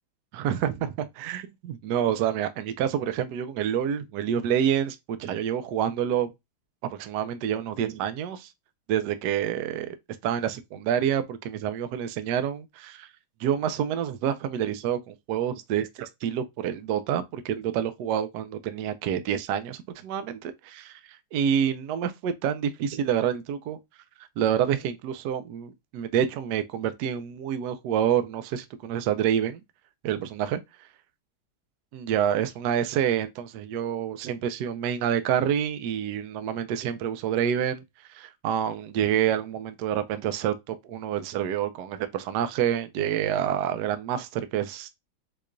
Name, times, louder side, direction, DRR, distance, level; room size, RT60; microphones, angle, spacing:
voice 1, 0.3-6.3 6.9-8.5 8.9-10.0 10.2-13.1 13.4-21.0 21.3-23.8 24.4-29.6 30.0-30.6 31.9-37.8 38.1-44.9, right 9 dB, 85° right, 0.9 m, -27 dB
4.8 x 2.3 x 2.4 m
omnidirectional pair, 2.3 m